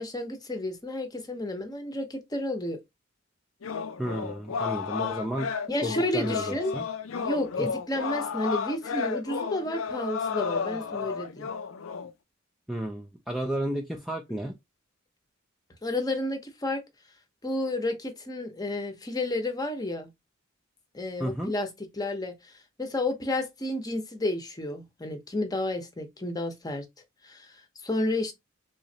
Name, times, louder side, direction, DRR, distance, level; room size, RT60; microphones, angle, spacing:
voice 1, 0.0-2.8 5.7-6.8 7.2-11.5 15.8-16.8 17.4-20.1 20.9-21.7 21.9-22.3 22.8-26.8 27.2-27.5 27.8-28.3, left 1 dB, 20° left, 0.8 m, -31 dB
sound 1, 3.6-12.1, left 6 dB, 80° left, 0.5 m, -32 dB
voice 2, 4.0-5.5 5.8-6.9 7.6-7.7 12.7-14.5 21.2-21.5, right 1 dB, ahead, 0.5 m, -32 dB
3.7 x 3.1 x 2.7 m
head